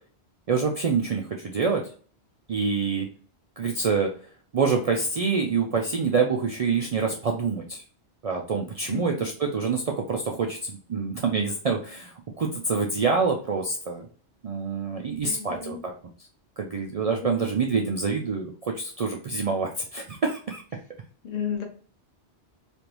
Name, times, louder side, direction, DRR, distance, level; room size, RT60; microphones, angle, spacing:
voice 1, 0.5-1.8 2.5-3.1 3.6-4.1 4.5-7.8 8.2-14.1 14.4-15.9 16.6-20.6, right 5 dB, 65° right, 1 dB, 0.3 m, -26 dB
voice 2, 8.9-9.2 15.2-15.8 17.2-17.5 21.2-21.6, left 7 dB, 40° left, 2 dB, 0.8 m, -33 dB
3.3 x 2.5 x 2.9 m, 0.42 s
omnidirectional pair, 1.1 m